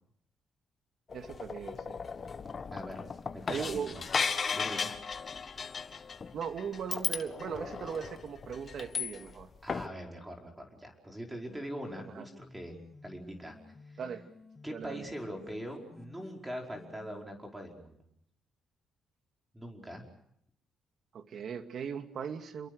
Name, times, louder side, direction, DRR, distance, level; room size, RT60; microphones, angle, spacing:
sound 1, 1.1-9.4 9.7-9.9, left 5 dB, 40° left, 1.6 m, -36 dB
voice 1, 1.1-2.0 3.5-3.9 6.3-9.5 12.1-12.3 14.0-14.2 14.7-15.1 21.1-22.7, right 7 dB, 60° right, 8 dB, 2.2 m, -38 dB
voice 2, 2.7-4.9 9.6-12.8 13.0-13.6 13.9-14.0 14.6-18.0 19.5-20.0, equal, 10° right, 1 dB, 5.2 m, -42 dB
sound 2, 11.5-17.2, left 3 dB, 25° left, 2.0 m, -54 dB
28.5 x 22.5 x 6.4 m, 0.72 s
cardioid pair, 90°, 0 cm